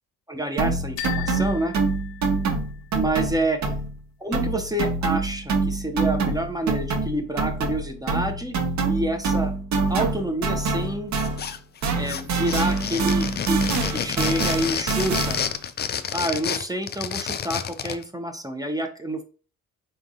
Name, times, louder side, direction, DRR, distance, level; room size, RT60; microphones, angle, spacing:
voice 1, 0.3-1.7 2.9-3.6 4.2-8.6 8.9-9.5 9.9-11.1 12.0-13.6 13.9-15.4 16.1-19.2, right 1 dB, 10° right, 6 dB, 0.7 m, -28 dB
sound 1, 0.6-4.0 4.3-11.6 11.8-15.6, right 4 dB, 50° right, 0.9 m, -26 dB
sound 2, 1.0-2.9, left 14 dB, 70° left, 0.7 m, -37 dB
sound 3, 11.2-11.8 12.1-18.0, left 8 dB, 30° left, 0.4 m, -29 dB
3.9 x 3.5 x 2.6 m, 0.38 s
hypercardioid pair, 60°, 37 cm